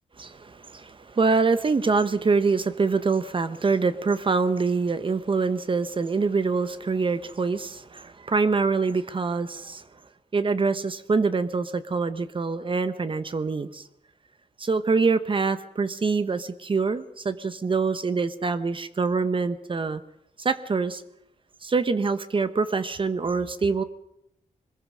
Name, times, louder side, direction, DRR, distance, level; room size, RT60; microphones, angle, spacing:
voice 1, 0.2-9.8 10.3-13.9 14.6-20.0 20.4-21.0 21.6-23.8, right 4 dB, 40° right, 12 dB, 1.1 m, -25 dB
22.0 x 20.5 x 6.3 m, 0.80 s
wide cardioid pair, 90°, 13 cm